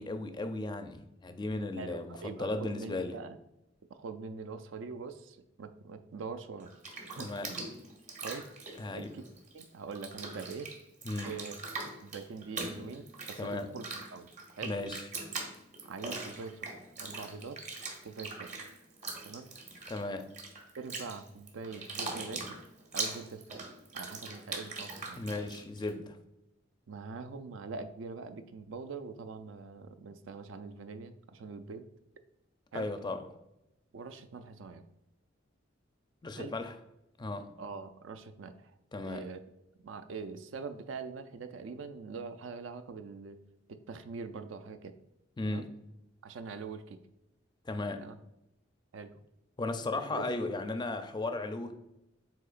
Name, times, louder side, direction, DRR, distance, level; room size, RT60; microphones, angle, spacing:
voice 1, 0.0-3.2 7.2-7.6 8.8-9.1 11.0-11.4 13.4-13.8 14.6-15.0 19.9-20.3 25.2-26.2 32.7-33.2 36.2-36.7 37.2-37.6 38.9-39.2 45.4-45.8 47.7-48.1 49.6-51.7, left 2 dB, 25° left, 7 dB, 0.4 m, -36 dB
voice 2, 1.8-3.4 3.9-6.7 7.2-7.6 8.2-8.5 8.9-9.2 9.5-10.7 11.2-11.6 12.0-13.9 14.1-14.3 14.6-14.7 15.9-16.7 17.0-17.6 18.0-18.5 19.3-19.5 20.8-22.6 22.9-25.2 26.9-31.9 32.7-32.9 33.9-34.8 36.3-36.5 37.6-38.7 39.0-39.4 39.8-43.4 43.7-45.0 45.4-45.7 46.2-47.0 48.0-48.1 48.9-49.1 50.1-50.3, right 4 dB, 70° right, 9 dB, 0.4 m, -43 dB
Bathtub (filling or washing), 6.6-9.6 9.9-25.9, right 3 dB, 40° right, 0.9 m, -41 dB
7.6 x 2.8 x 2.5 m, 0.89 s
head